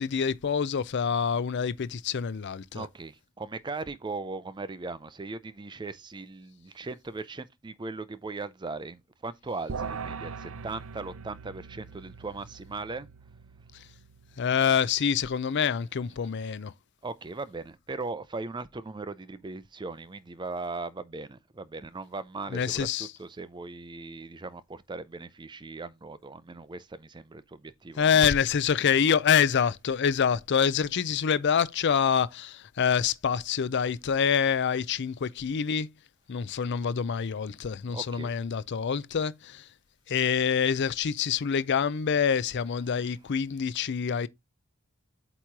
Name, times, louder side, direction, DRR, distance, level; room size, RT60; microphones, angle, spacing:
voice 1, 0.0-2.9 14.4-16.7 22.5-23.1 28.0-35.9 36.3-39.6 40.1-44.3, left 7 dB, 55° left, 0.5 m, -26 dB
voice 2, 2.7-13.1 17.0-22.9 23.2-28.2 37.9-38.3, right 3 dB, 20° right, 0.5 m, -38 dB
sound 1, 9.7-15.2, right 5 dB, 70° right, 0.6 m, -41 dB
8.3 x 3.0 x 4.6 m
head